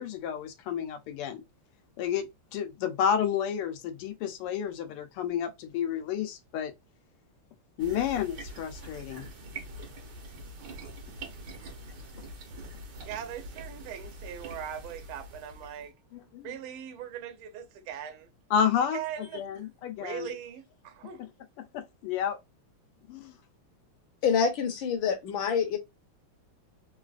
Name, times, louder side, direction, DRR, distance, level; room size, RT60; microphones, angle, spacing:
voice 1, 0.0-1.4 2.0-6.7 7.8-9.3 16.1-16.5 18.5-20.3 21.6-22.4 23.1-23.4, left 8 dB, 90° left, 1.6 m, -31 dB
sound 1, 7.8-15.9, right 1 dB, 60° right, 1.4 m, -44 dB
voice 2, 13.0-15.9 16.4-18.3 18.9-19.4 20.0-21.2, right 9 dB, 75° right, 1.5 m, -40 dB
voice 3, 24.2-25.8, left 6 dB, 70° left, 1.5 m, -26 dB
4.0 x 2.4 x 2.3 m
omnidirectional pair, 2.4 m